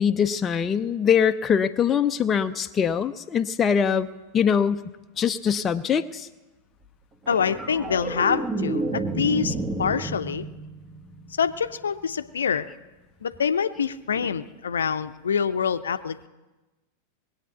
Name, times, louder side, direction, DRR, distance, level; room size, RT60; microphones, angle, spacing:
voice 1, 0.0-4.1 4.3-6.3, left 7 dB, 20° left, 8 dB, 0.6 m, -23 dB
voice 2, 7.3-10.4 11.4-12.6 13.2-16.3, left 7 dB, 70° left, 11 dB, 0.7 m, -26 dB
sound 1, 7.3-11.8 14.2-14.3, right 2 dB, 20° right, 1.4 m, -31 dB
21.0 x 8.1 x 8.1 m, 1.1 s
figure-of-eight pair, 90°, 0 cm